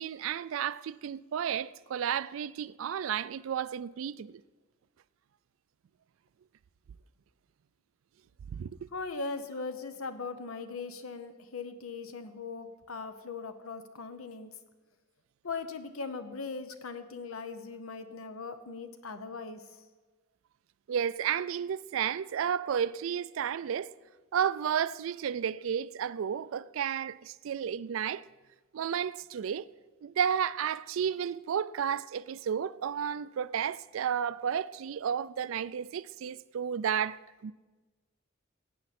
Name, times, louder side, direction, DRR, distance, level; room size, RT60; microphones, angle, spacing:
voice 1, 0.0-4.4 8.5-8.9 20.9-23.9 24.3-28.2 28.7-29.6 30.0-37.5, right 8 dB, 70° right, 0.3 m, -32 dB
voice 2, 8.9-14.5 15.4-19.8, left 4 dB, 90° left, 0.9 m, -39 dB
16.0 x 8.7 x 4.2 m
head